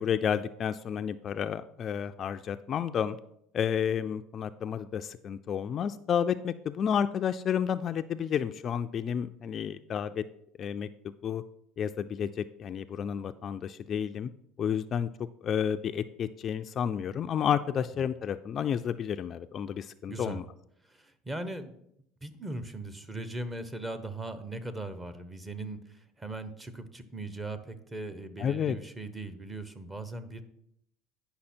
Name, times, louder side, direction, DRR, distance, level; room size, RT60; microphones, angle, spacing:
voice 1, 0.0-3.2 3.5-10.2 10.6-10.9 11.2-11.4 11.8-14.3 14.6-15.1 15.4-20.4 28.4-28.8, left 8 dB, 40° left, 10 dB, 0.3 m, -31 dB
voice 2, 20.1-20.4 20.8-21.7 22.2-30.4, right 2 dB, 15° right, 11 dB, 0.8 m, -39 dB
9.7 x 5.6 x 4.3 m, 0.75 s
supercardioid pair, 120°, 0 cm